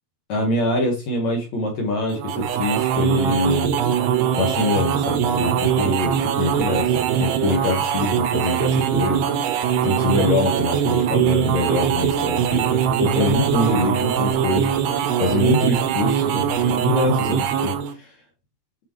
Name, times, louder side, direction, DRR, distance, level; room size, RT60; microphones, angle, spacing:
voice 1, 0.3-3.8 4.4-18.1, left 2 dB, 60° left, 1 dB, 1.9 m, -24 dB
sound 1, 2.1-17.9, right 9 dB, 75° right, 2.6 m, -22 dB
9.5 x 5.0 x 3.1 m, 0.26 s
omnidirectional pair, 5.5 m